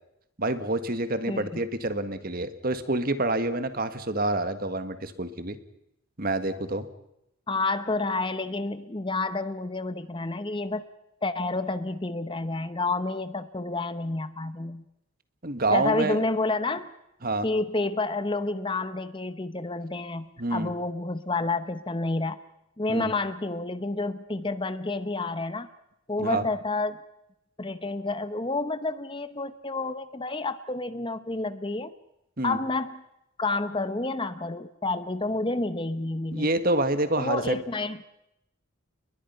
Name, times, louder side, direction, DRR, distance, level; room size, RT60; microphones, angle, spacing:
voice 1, 0.4-5.6 6.2-6.9 15.4-16.2 17.2-17.5 20.4-20.7 22.9-23.1 26.2-26.5 32.4-32.6 36.3-37.6, right 2 dB, 40° right, 10 dB, 1.6 m, -27 dB
voice 2, 1.3-1.6 7.5-10.9 11.2-14.8 15.7-16.9 17.4-22.4 22.8-25.7 26.1-27.0 27.6-31.9 32.4-33.0 33.4-36.6 37.2-38.0, left 2 dB, 20° left, 12 dB, 0.8 m, -29 dB
29.5 x 21.5 x 5.7 m, 0.84 s
head